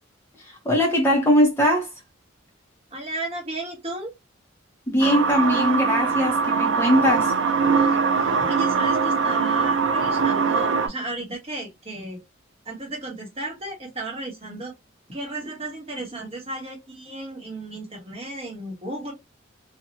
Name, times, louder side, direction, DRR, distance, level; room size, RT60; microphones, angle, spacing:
voice 1, 0.4-1.9 4.9-7.3, equal, 10° left, 0.8 m, -21 dB
voice 2, 2.9-4.1 7.8-12.2 12.6-14.7 15.1-19.1, right 2 dB, 30° right, 1.1 m, -34 dB
sound 1, 5.0-10.9, right 5 dB, 65° right, 0.4 m, -22 dB
2.5 x 2.2 x 2.7 m
head